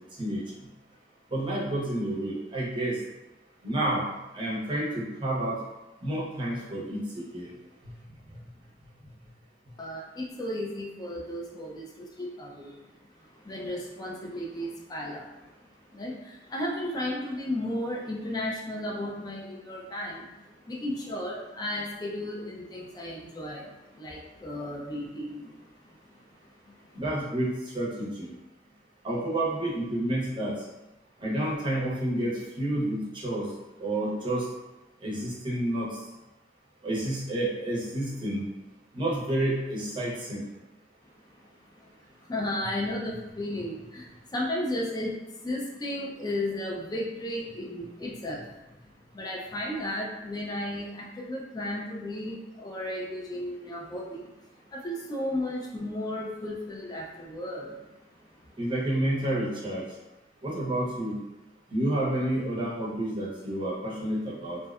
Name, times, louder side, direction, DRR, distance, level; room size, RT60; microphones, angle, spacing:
voice 1, 1.3-3.0 3.6-4.0 4.3-5.6 6.0-7.5 26.9-28.3 29.0-30.5 31.2-33.5 33.8-34.4 35.0-35.9 36.8-38.4 38.9-40.5 58.6-59.8 60.4-61.2 61.7-64.6, right 1 dB, 25° right, -5 dB, 0.6 m, -29 dB
voice 2, 9.8-12.8 13.3-15.5 15.9-26.9 41.0-48.5 48.8-57.8 58.3-58.6, left 1 dB, 20° left, -2 dB, 0.3 m, -35 dB
2.6 x 2.1 x 2.3 m, 0.98 s
head